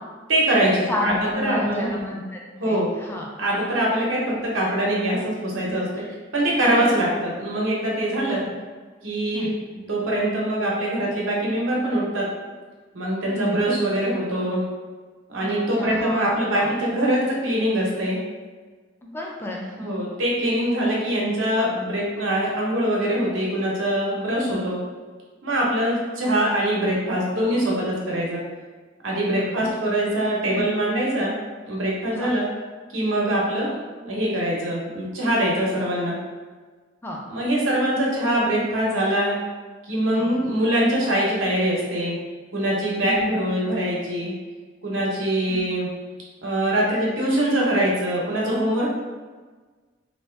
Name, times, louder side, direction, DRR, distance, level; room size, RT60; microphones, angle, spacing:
voice 1, 0.3-1.1 1.4-1.9 2.6-2.9 3.4-5.9 6.3-8.4 9.0-9.5 9.9-12.3 12.9-14.6 15.3-18.2 19.8-24.8 25.4-28.4 29.0-31.3 31.6-32.5 32.9-33.7 34.0-36.2 37.3-39.4 39.9-42.2 42.5-44.3 44.8-45.9 46.4-48.9, right 1 dB, 85° right, -4 dB, 0.8 m, -23 dB
voice 2, 0.9-3.3 6.0-6.1 6.5-6.9 8.2-8.5 9.3-9.5 13.3-13.7 15.4-16.3 16.6-16.7 19.0-20.0 24.4-24.5 29.3-29.7 30.5-30.7 32.2-32.3 37.0-37.2 40.1-40.3 43.0-43.3 45.5-45.6, left 1 dB, 10° left, -2 dB, 0.4 m, -32 dB
2.7 x 2.3 x 3.3 m, 1.4 s
head